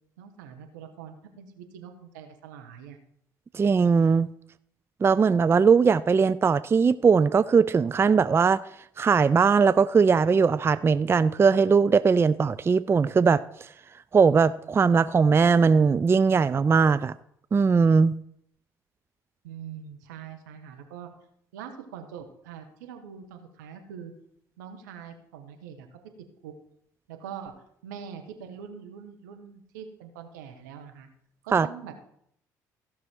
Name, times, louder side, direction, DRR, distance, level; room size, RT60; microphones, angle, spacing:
voice 1, 0.2-3.0 19.4-21.1 21.5-24.1 24.6-25.9 26.4-26.5 27.1-27.5 27.8-31.1 31.4-31.9, right 8 dB, 80° right, 1.2 m, -43 dB
voice 2, 3.5-4.3 5.0-8.6 9.0-13.4 14.1-17.1 17.5-18.2 31.5-31.7, right 5 dB, 25° right, 0.4 m, -20 dB
15.0 x 6.2 x 4.5 m
hypercardioid pair, 55°, 10 cm